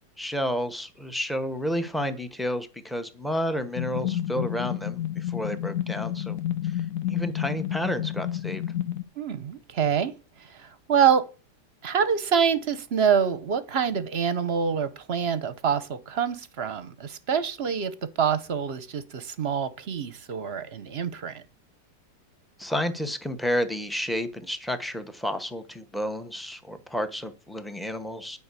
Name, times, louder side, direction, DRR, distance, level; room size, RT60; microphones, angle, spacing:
voice 1, 0.2-6.4 6.6-6.7 7.1-8.6 22.6-28.4, equal, ahead, 0.7 m, -31 dB
sound 1, 3.8-9.0, left 11 dB, 60° left, 1.1 m, -30 dB
voice 2, 9.2-10.1 10.4-11.2 11.8-21.4, right 7 dB, 45° right, 0.9 m, -26 dB
10.5 x 5.4 x 8.3 m
omnidirectional pair, 1.8 m